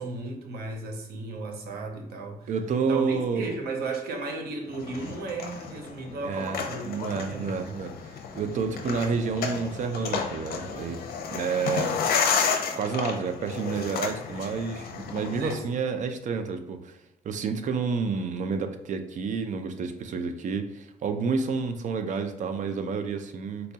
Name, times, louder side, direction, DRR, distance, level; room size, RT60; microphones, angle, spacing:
voice 1, 0.0-2.5 2.9-7.7 15.4-15.6, right 3 dB, 90° right, 2 dB, 0.7 m, -35 dB
voice 2, 2.5-3.5 6.2-11.0 11.3-11.9 12.8-17.0 17.2-23.7, right 5 dB, 55° right, 7 dB, 0.5 m, -29 dB
sound 1, 4.7-15.6, left 6 dB, 85° left, 0.6 m, -32 dB
4.0 x 2.2 x 2.7 m, 0.87 s
cardioid pair, 125°, 15 cm